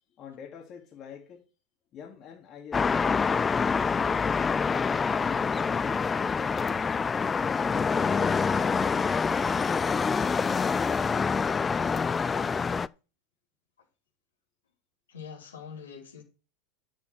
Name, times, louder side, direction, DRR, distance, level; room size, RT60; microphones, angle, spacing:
voice 1, 0.2-1.4 1.9-3.2 3.8-7.1, left 7 dB, 40° left, 2.9 m, -45 dB
sound 1, 2.7-12.9, left 5 dB, 20° left, 0.4 m, -26 dB
voice 2, 15.1-16.2, left 6 dB, 85° left, 4.6 m, -43 dB
10.5 x 7.5 x 4.5 m
hypercardioid pair, 90°, 0 cm